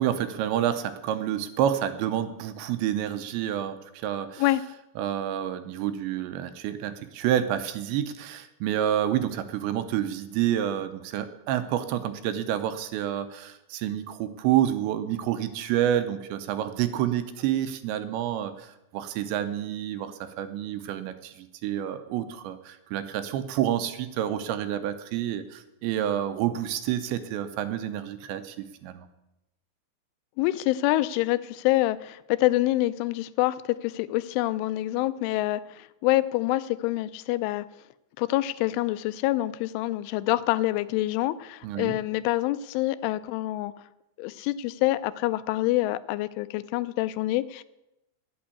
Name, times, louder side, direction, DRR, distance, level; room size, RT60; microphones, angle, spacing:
voice 1, 0.0-4.4 5.0-29.1 41.6-42.0, right 11 dB, 80° right, 10 dB, 2.9 m, -28 dB
voice 2, 30.4-37.7 38.2-43.7 44.2-47.6, left 17 dB, 90° left, 15 dB, 3.1 m, -26 dB
11.5 x 8.8 x 8.4 m, 0.91 s
omnidirectional pair, 5.4 m